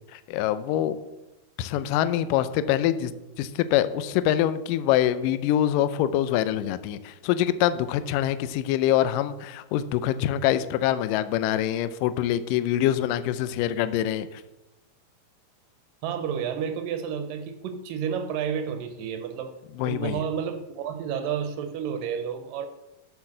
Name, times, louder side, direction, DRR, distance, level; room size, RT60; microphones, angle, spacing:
voice 1, 0.1-1.0 1.6-3.1 3.4-14.4 19.8-20.2, left 12 dB, 80° left, 13 dB, 2.0 m, -25 dB
voice 2, 16.0-19.5 19.8-22.7, right 7 dB, 75° right, 8 dB, 2.2 m, -30 dB
7.4 x 7.2 x 6.4 m, 0.99 s
omnidirectional pair, 4.2 m